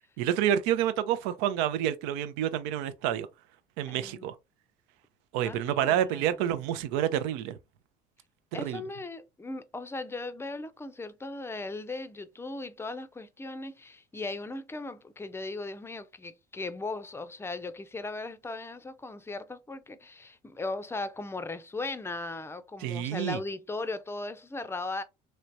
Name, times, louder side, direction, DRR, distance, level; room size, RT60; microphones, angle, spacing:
voice 1, 0.2-3.3 3.8-4.3 5.3-7.6 8.6-8.8 22.8-23.4, right 11 dB, 70° right, 0.6 m, -28 dB
voice 2, 3.9-4.3 5.4-6.3 8.5-25.0, left 3 dB, 10° left, 0.5 m, -38 dB
3.2 x 3.1 x 2.5 m
hypercardioid pair, 65°, 21 cm